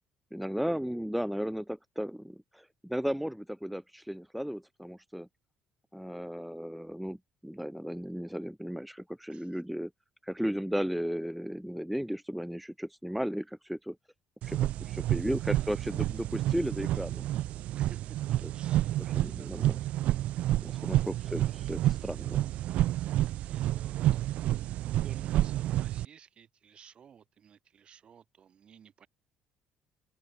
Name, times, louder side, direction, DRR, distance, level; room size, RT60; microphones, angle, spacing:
voice 1, 0.3-5.3 5.9-7.2 7.4-9.9 10.2-14.0 14.4-17.3 18.4-18.5 19.2-19.7 20.6-22.5, equal, ahead, 0.5 m, -35 dB
voice 2, 9.3-9.6 14.7-16.0 17.8-18.2 18.5-20.2 20.6-21.1 23.4-24.2 24.6-29.1, right 8 dB, 45° right, 7.7 m, -55 dB
sound 1, 14.4-26.0, right 14 dB, 70° right, 0.4 m, -29 dB
cardioid pair, 100°, 2 cm